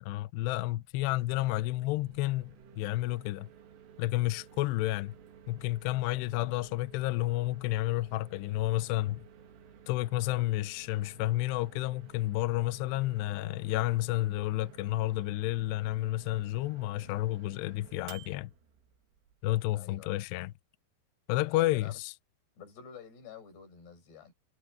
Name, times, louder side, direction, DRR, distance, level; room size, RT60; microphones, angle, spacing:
voice 1, 0.0-3.5 4.0-5.1 5.5-9.2 9.9-18.5 19.4-20.5 21.3-22.1, left 17 dB, 80° left, 2.5 m, -31 dB
Microwave oven, 0.9-19.7, right 7 dB, 90° right, 5.4 m, -55 dB
voice 2, 19.7-20.1 21.5-22.0 22.6-24.3, left 7 dB, 60° left, 7.9 m, -49 dB
omnidirectional pair, 5.5 m